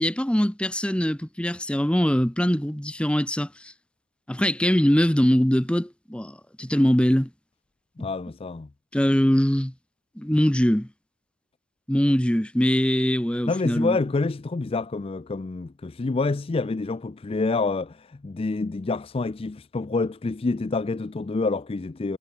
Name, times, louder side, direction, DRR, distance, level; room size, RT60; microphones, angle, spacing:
voice 1, 0.0-3.7 4.3-7.3 8.9-9.7 10.2-10.9 11.9-14.0, equal, 5° left, 0.8 m, -22 dB
voice 2, 8.0-8.7 13.5-22.2, left 3 dB, 25° left, 0.4 m, -27 dB
head